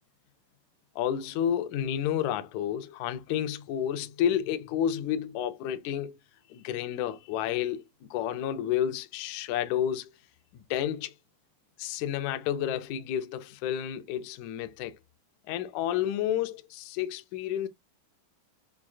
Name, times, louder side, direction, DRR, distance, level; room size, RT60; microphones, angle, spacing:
voice 1, 0.9-6.2 6.5-7.8 8.1-10.1 10.5-11.1 11.8-14.9 15.5-17.7, left 10 dB, 85° left, 1.6 m, -30 dB
6.2 x 2.4 x 2.3 m
omnidirectional pair, 4.1 m